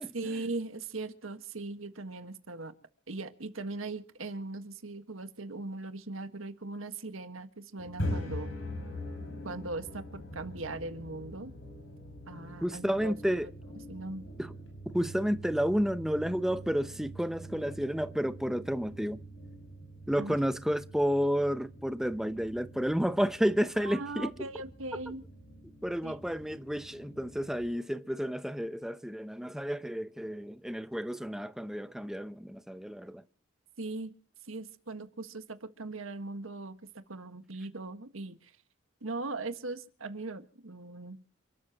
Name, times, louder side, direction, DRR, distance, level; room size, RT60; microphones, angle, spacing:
voice 1, 0.1-2.7 3.1-8.5 9.4-11.5 12.3-13.1 13.9-14.3 20.2-20.3 23.8-25.2 26.0-26.2 33.8-34.1 34.5-36.8 37.1-38.5 39.0-41.2, right 3 dB, 90° right, 1.6 m, -39 dB
sound 1, 7.8-27.7, equal, 65° left, 6.0 m, -43 dB
voice 2, 12.6-13.5 14.4-14.5 14.9-19.2 20.1-24.3 25.8-33.2, equal, ahead, 0.7 m, -31 dB
29.0 x 13.0 x 3.0 m
head